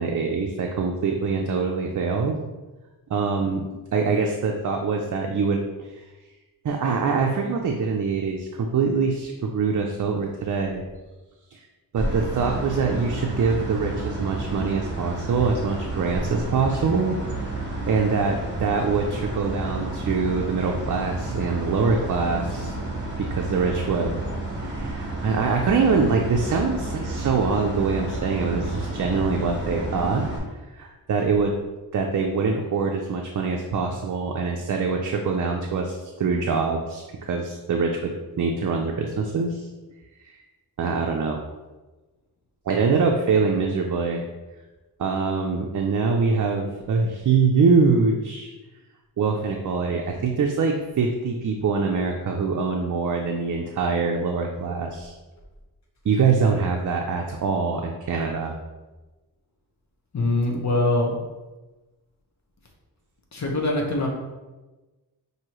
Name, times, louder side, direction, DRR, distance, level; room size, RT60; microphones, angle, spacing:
voice 1, 0.0-2.4 3.1-6.0 6.6-10.8 11.5-11.6 11.9-22.7 23.2-24.2 24.6-30.3 30.7-31.5 31.9-37.0 37.3-39.7 40.2-40.4 40.8-41.4 42.7-44.2 45.0-48.5 49.2-55.1 56.0-58.6, right 4 dB, 50° right, 2 dB, 0.5 m, -24 dB
sound 1, 12.0-30.4, right 2 dB, 30° right, 1.1 m, -31 dB
voice 2, 60.1-61.1 63.3-64.1, left 2 dB, 45° left, 0 dB, 0.9 m, -23 dB
6.0 x 2.7 x 3.0 m, 1.2 s
wide cardioid pair, 100°, 40 cm